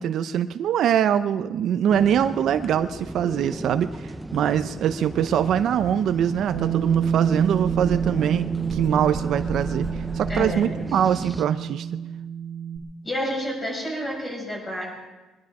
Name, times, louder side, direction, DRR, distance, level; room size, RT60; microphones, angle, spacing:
voice 1, 0.0-11.9, right 9 dB, 55° right, 11 dB, 0.6 m, -23 dB
sound 1, 1.9-11.5, right 1 dB, 5° right, 0.6 m, -36 dB
Dog, 5.9-6.0 6.3-10.5, right 1 dB, 25° right, 1.2 m, -37 dB
Bass guitar, 6.5-12.8, right 8 dB, 80° right, 2.3 m, -28 dB
voice 2, 10.3-10.7 13.0-14.9, equal, 25° left, -1 dB, 6.0 m, -29 dB
23.0 x 11.5 x 4.8 m, 1.1 s
cardioid pair, 145°, 0 cm